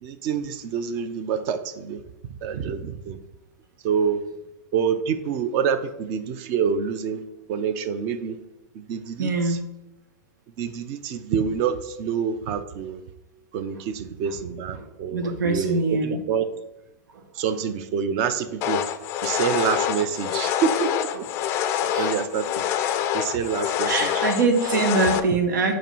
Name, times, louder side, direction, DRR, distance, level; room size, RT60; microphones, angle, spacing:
voice 1, 0.0-2.0 2.4-3.2 3.8-4.2 4.7-7.2 7.5-8.4 8.7-9.6 10.6-13.0 13.5-16.5 17.4-18.8 19.2-21.1 22.0-22.6 23.1-24.1, right 7 dB, 35° right, 11 dB, 0.6 m, -27 dB
voice 2, 9.2-9.6 14.7-16.2 17.1-17.2 20.0-20.1 20.5-20.6 21.1-21.3 21.8-22.1 22.9-23.0 23.8-25.7, right 3 dB, 90° right, 4 dB, 1.4 m, -24 dB
sound 1, 18.6-25.2, left 10 dB, 30° left, 0.4 m, -26 dB
8.9 x 3.1 x 6.0 m, 0.94 s
supercardioid pair, 160°, 10 cm